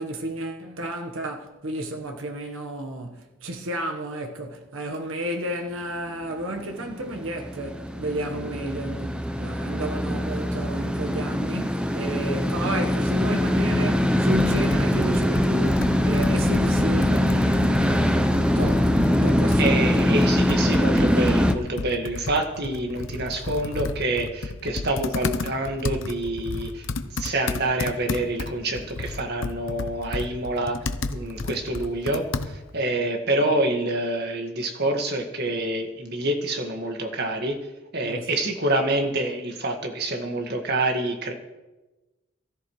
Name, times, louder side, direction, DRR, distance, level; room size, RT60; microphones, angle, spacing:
voice 1, 0.0-18.2 18.5-20.1 38.0-38.4, right 1 dB, 75° right, 1.2 m, -32 dB
sound 1, 6.3-21.5, left 1 dB, 5° right, 0.6 m, -22 dB
Computer keyboard, 14.3-32.8, left 3 dB, 70° left, 0.8 m, -33 dB
voice 2, 19.6-30.8 31.1-37.6 37.9-41.3, right 1 dB, 50° right, 1.7 m, -27 dB
19.0 x 13.5 x 3.2 m
head